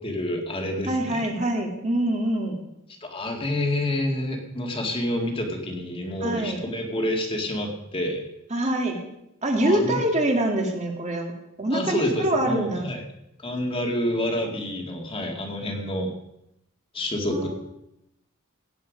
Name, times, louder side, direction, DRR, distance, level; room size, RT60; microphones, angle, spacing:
voice 1, 0.0-1.3 3.0-8.2 9.6-10.0 11.7-13.0 13.4-16.1 16.9-17.5, left 1 dB, 25° left, 2 dB, 2.2 m, -28 dB
voice 2, 0.9-2.6 6.2-6.6 8.5-9.1 9.4-11.3 11.6-12.9 17.3-17.5, right 1 dB, 30° right, 2 dB, 2.2 m, -25 dB
17.0 x 9.4 x 5.1 m, 0.85 s
head